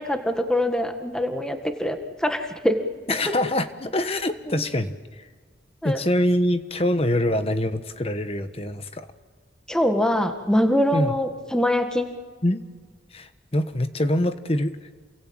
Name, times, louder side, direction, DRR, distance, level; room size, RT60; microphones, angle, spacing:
voice 1, 0.0-2.8 4.5-4.6 5.8-6.0 9.7-12.1, left 1 dB, 5° left, 6 dB, 1.7 m, -23 dB
voice 2, 3.1-5.2 5.8-9.1 10.9-11.1 12.4-12.7 13.1-14.8, left 1 dB, 35° left, 10 dB, 1.2 m, -24 dB
28.5 x 22.0 x 8.9 m, 1.5 s
head